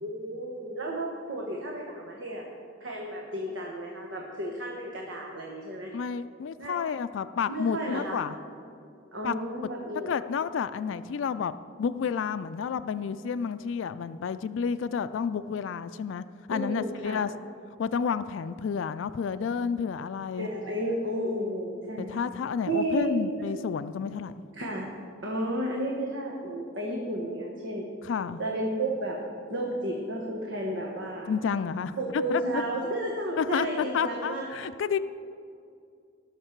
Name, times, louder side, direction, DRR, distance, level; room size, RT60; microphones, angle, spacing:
voice 1, 0.0-2.4 2.8-5.9 6.6-6.8 7.5-8.2 9.1-10.1 16.5-17.2 20.4-22.2 22.7-23.2 24.5-24.9 25.2-27.8 28.4-29.2 29.5-31.3 32.0-34.5, right 1 dB, 70° right, -1 dB, 1.3 m, -32 dB
voice 2, 5.9-8.3 9.2-9.4 10.1-11.5 11.8-17.3 17.8-20.5 22.0-24.3 28.0-28.4 31.3-32.6 33.4-35.0, left 6 dB, 75° left, 13 dB, 0.3 m, -30 dB
18.5 x 6.6 x 4.5 m, 2.4 s
head